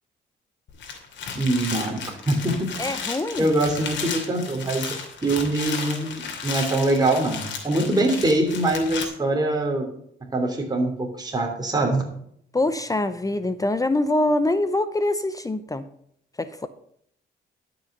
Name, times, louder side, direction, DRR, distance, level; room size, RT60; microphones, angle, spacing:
sound 1, 0.7-9.1, left 5 dB, 65° left, 2.6 m, -34 dB
voice 1, 1.3-2.7 3.4-4.9 5.2-9.9 10.2-12.0, right 2 dB, 20° right, 0 dB, 3.1 m, -23 dB
voice 2, 2.8-3.5 12.5-15.9 16.4-16.7, left 2 dB, 15° left, 12 dB, 0.7 m, -24 dB
12.0 x 6.3 x 6.7 m, 0.68 s
cardioid pair, 90°, 20 cm